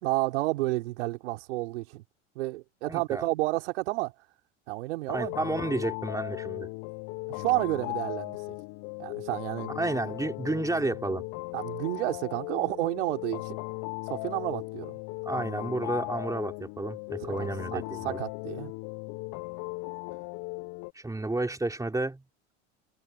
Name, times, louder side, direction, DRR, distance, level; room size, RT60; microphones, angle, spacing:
voice 1, 0.0-2.0 2.4-4.1 4.7-5.3 7.3-8.4 9.0-9.8 11.5-13.6 14.1-15.0 17.2-18.7, right 20 dB, 70° right, 4.1 m, -31 dB
voice 2, 2.9-3.3 5.1-6.7 9.7-11.2 15.2-18.2 20.9-22.2, right 2 dB, 10° right, 4.4 m, -31 dB
sound 1, 5.1-20.9, left 25 dB, 55° left, 1.2 m, -37 dB
hypercardioid pair, 85°, 36 cm